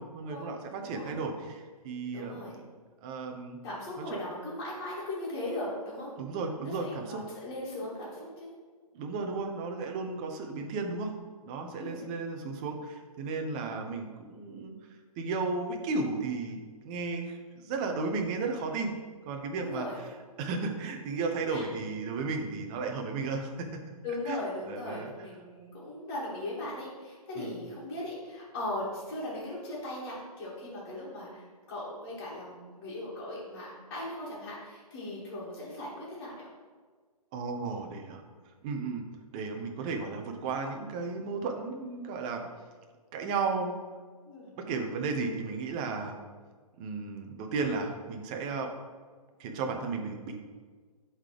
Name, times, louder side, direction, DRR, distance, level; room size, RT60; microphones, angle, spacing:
voice 1, 0.0-2.7 3.0-3.6 6.2-7.2 8.9-11.1 11.5-14.7 15.2-18.9 19.2-19.9 20.4-23.8 24.3-25.1 27.4-27.5 37.3-38.2 38.6-39.0 39.3-42.4 43.1-43.8 44.5-46.2 46.8-48.7 49.4-50.4, right 4 dB, 15° right, 3 dB, 0.3 m, -34 dB
voice 2, 0.8-1.2 2.1-2.6 3.6-6.1 6.6-8.5 11.8-12.1 13.6-13.8 19.6-20.0 21.5-21.7 24.0-36.5 42.4-42.5 44.3-44.5, left 1 dB, 30° left, -9 dB, 2.1 m, -38 dB
11.0 x 3.8 x 3.3 m, 1.5 s
hypercardioid pair, 155°, 20 cm